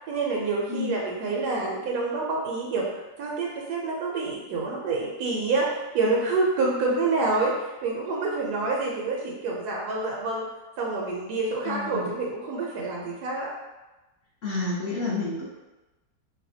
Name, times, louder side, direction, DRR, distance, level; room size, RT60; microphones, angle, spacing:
voice 1, 0.1-2.9 3.2-10.5 10.8-13.5, right 3 dB, 85° right, -3 dB, 1.2 m, -27 dB
voice 2, 11.7-12.1 14.4-15.4, left 3 dB, 55° left, -6 dB, 0.8 m, -30 dB
4.1 x 2.2 x 2.6 m, 1.1 s
omnidirectional pair, 1.6 m